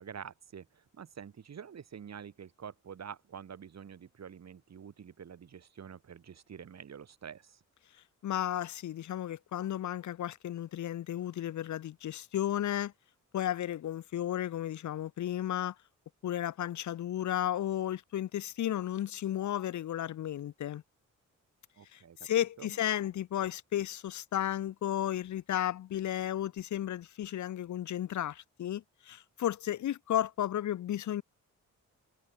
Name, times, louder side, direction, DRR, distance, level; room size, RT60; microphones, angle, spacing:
voice 1, 0.0-7.6 21.8-22.2 22.6-22.8, right 7 dB, 55° right, 2.2 m, -47 dB
voice 2, 8.2-12.9 13.3-15.7 16.2-20.8 21.9-31.2, left 11 dB, 65° left, 0.7 m, -33 dB
cardioid pair, 90°, 32 cm